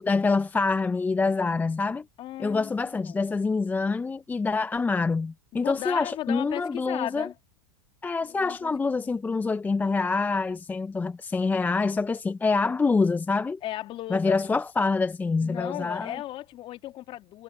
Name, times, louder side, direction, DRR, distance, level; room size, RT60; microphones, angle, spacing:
voice 1, 0.0-2.0 2.4-7.3 8.0-13.6 14.1-16.2, left 4 dB, 10° left, 0.6 m, -26 dB
voice 2, 2.2-3.2 5.5-7.3 8.2-9.2 13.6-14.6 15.4-17.4, left 14 dB, 40° left, 2.8 m, -36 dB
hypercardioid pair, 105°, 14 cm